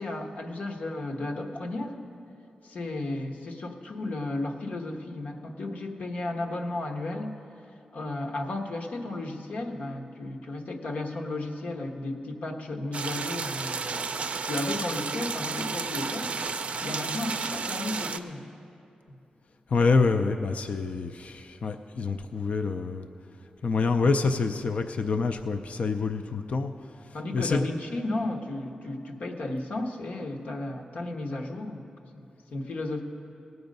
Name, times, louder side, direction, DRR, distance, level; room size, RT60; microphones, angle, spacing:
voice 1, 0.0-1.9 2.6-7.3 7.9-18.4 19.1-19.2 27.1-31.9 32.1-33.0, left 2 dB, 75° left, 1 dB, 1.2 m, -34 dB
sound 1, 12.9-18.2, right 5 dB, 50° right, 0.4 m, -32 dB
voice 2, 19.7-23.1 23.6-26.7 27.3-27.7, left 4 dB, 55° left, 7 dB, 0.4 m, -26 dB
18.5 x 7.9 x 5.3 m, 2.7 s
wide cardioid pair, 145°, 3 cm